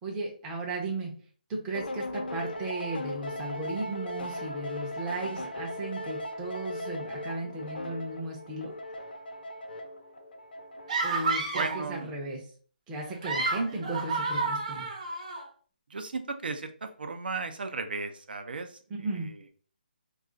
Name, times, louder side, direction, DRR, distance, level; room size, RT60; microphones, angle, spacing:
voice 1, 0.0-1.1 1.5-8.7 11.0-12.4 12.9-14.9 18.9-19.3, right 2 dB, 10° right, -1 dB, 0.5 m, -35 dB
sound 1, 1.7-11.1, left 1 dB, 70° left, 0.6 m, -38 dB
sound 2, 10.9-11.9 13.0-15.4, right 3 dB, 45° right, 0.8 m, -30 dB
voice 2, 11.5-12.1 15.9-18.8 19.1-19.3, right 4 dB, 70° right, 7 dB, 0.5 m, -35 dB
2.4 x 2.3 x 3.7 m, 0.43 s
hypercardioid pair, 170°, 5 cm